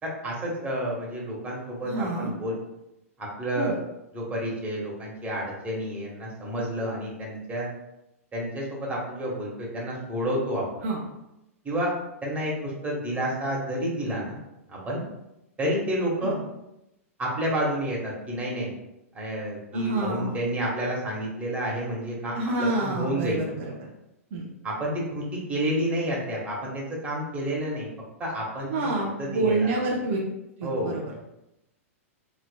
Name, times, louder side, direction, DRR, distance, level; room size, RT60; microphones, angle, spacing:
voice 1, 0.0-2.5 3.2-3.8 4.1-7.7 8.3-10.8 11.6-11.9 12.2-14.4 14.7-15.0 15.6-16.4 17.2-18.7 19.1-23.4 24.6-27.9 28.2-28.9 29.2-29.7 30.6-30.9, equal, 15° right, -3 dB, 1.2 m, -30 dB
voice 2, 1.8-2.3 3.6-3.8 10.8-11.0 16.2-16.4 19.7-20.3 22.3-23.9 24.3-24.4 28.7-30.2 30.6-31.0, right 2 dB, 55° right, -2 dB, 0.7 m, -27 dB
3.8 x 3.2 x 2.2 m, 0.88 s
hypercardioid pair, 110°, 8 cm